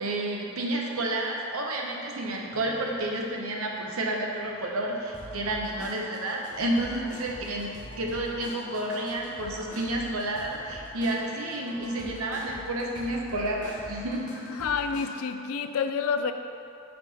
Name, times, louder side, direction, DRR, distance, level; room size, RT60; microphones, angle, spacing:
voice 1, 0.0-7.7 8.0-14.3 14.6-14.7, right 1 dB, 80° right, -1 dB, 0.8 m, -30 dB
sound 1, 2.3-15.2, left 1 dB, 35° left, 0.8 m, -45 dB
voice 2, 14.6-16.3, left 6 dB, 80° left, 8 dB, 0.3 m, -28 dB
5.7 x 4.4 x 4.1 m, 2.6 s
head